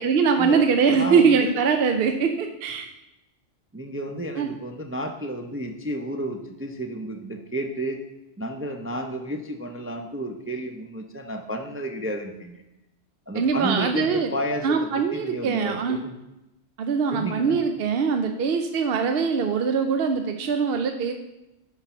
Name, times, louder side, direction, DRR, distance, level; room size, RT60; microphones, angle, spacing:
voice 1, 0.0-2.9 4.4-4.5 13.3-14.3 14.6-16.0 16.8-21.1, right 5 dB, 60° right, 6 dB, 0.7 m, -22 dB
voice 2, 0.9-1.5 3.7-8.0 8.4-12.6 13.3-16.1 17.1-17.6, equal, 20° right, 3 dB, 0.3 m, -32 dB
10.0 x 4.0 x 5.7 m, 0.93 s
omnidirectional pair, 1.3 m